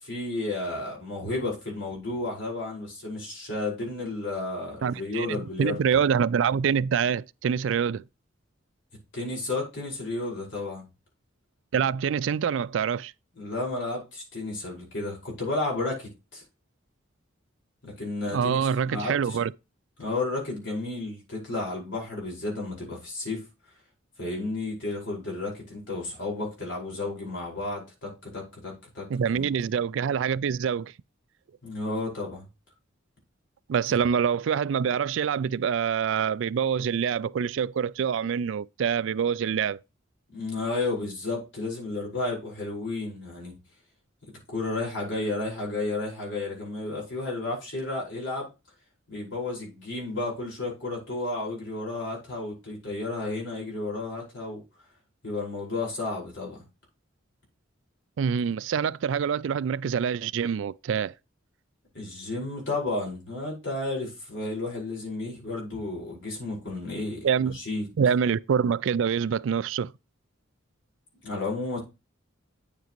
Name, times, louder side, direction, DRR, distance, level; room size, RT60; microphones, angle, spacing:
voice 1, 0.0-5.8 9.1-10.8 13.4-16.4 17.8-18.6 18.9-19.4 20.0-23.4 24.2-29.1 29.3-29.5 31.6-32.4 40.3-43.5 44.5-48.5 49.1-54.6 55.2-56.6 61.9-67.2 67.5-67.8 71.2-71.8, left 2 dB, 65° left, 5.0 m, -32 dB
voice 2, 4.8-8.0 11.7-13.1 18.3-19.5 29.1-30.9 33.7-39.8 58.2-61.1 67.2-67.6 68.0-69.9, right 7 dB, 70° right, 0.3 m, -25 dB
9.2 x 7.4 x 3.0 m
head